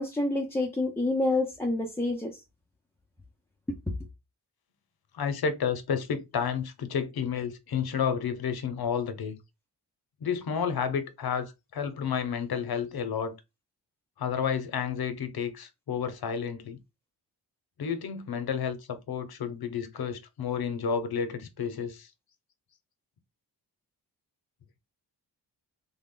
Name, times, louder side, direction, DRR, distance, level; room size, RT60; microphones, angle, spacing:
voice 1, 0.0-2.4, left 2 dB, 5° left, 0.5 m, -28 dB
voice 2, 5.1-9.4 10.2-13.3 14.2-16.8 17.8-22.1, left 7 dB, 60° left, 0.8 m, -31 dB
3.4 x 2.2 x 3.7 m
wide cardioid pair, 120°, 41 cm